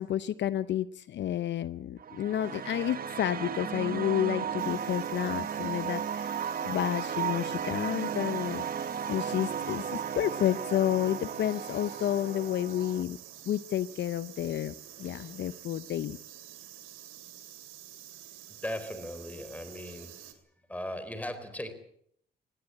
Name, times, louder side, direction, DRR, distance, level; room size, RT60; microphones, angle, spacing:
voice 1, 0.0-8.6 9.1-13.2 13.5-14.7 15.0-16.2, left 11 dB, 65° left, 15 dB, 0.8 m, -30 dB
sound 1, 2.0-13.0, right 8 dB, 45° right, 1.4 m, -35 dB
sound 2, 4.6-20.3, right 12 dB, 90° right, 2.8 m, -49 dB
voice 2, 18.6-20.3 20.7-21.7, left 1 dB, 5° left, 11 dB, 4.2 m, -38 dB
20.5 x 16.5 x 8.4 m, 0.67 s
cardioid pair, 90°, 20 cm